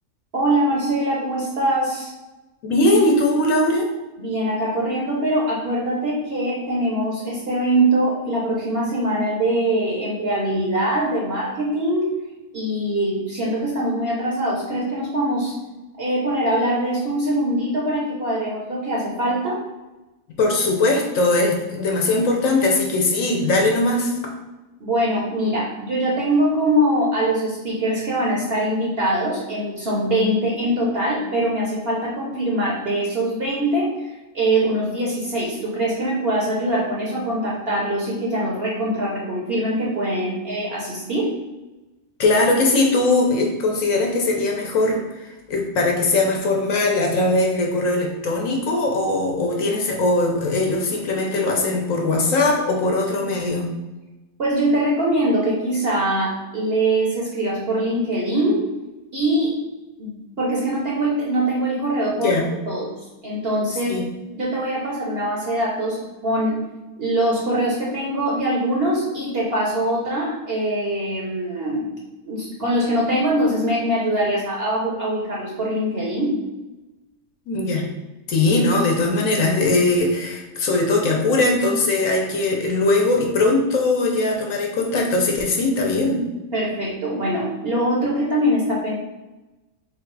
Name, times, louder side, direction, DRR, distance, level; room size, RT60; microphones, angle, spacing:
voice 1, 0.3-2.1 4.2-12.1 12.5-15.6 16.0-19.6 24.8-33.9 34.3-41.4 54.4-58.6 59.1-59.6 60.0-62.3 62.7-62.9 63.2-64.0 64.3-66.6 67.0-71.8 72.2-76.4 86.5-88.9, right 1 dB, 55° right, -4 dB, 0.8 m, -23 dB
voice 2, 2.6-3.9 20.4-24.1 42.2-53.7 62.2-62.4 63.9-64.0 77.5-77.9 78.3-86.2, left 2 dB, 65° left, 1 dB, 1.0 m, -20 dB
3.8 x 2.4 x 4.5 m, 1.1 s
omnidirectional pair, 1.7 m